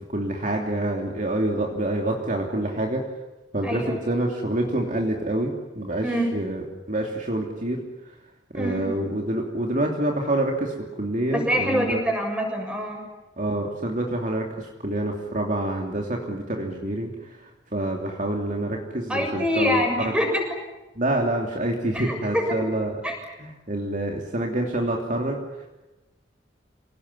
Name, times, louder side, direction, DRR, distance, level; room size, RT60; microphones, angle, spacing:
voice 1, 0.0-3.1 3.5-6.6 6.9-8.2 8.5-12.0 13.4-20.1 20.9-22.9 23.4-25.4, right 1 dB, 45° right, 1 dB, 3.1 m, -27 dB
voice 2, 3.6-4.0 6.0-6.4 8.5-8.9 11.3-13.1 19.1-20.4 21.9-22.7 23.0-23.1, equal, 5° right, 2 dB, 7.1 m, -25 dB
28.0 x 18.5 x 9.9 m, 1.1 s
head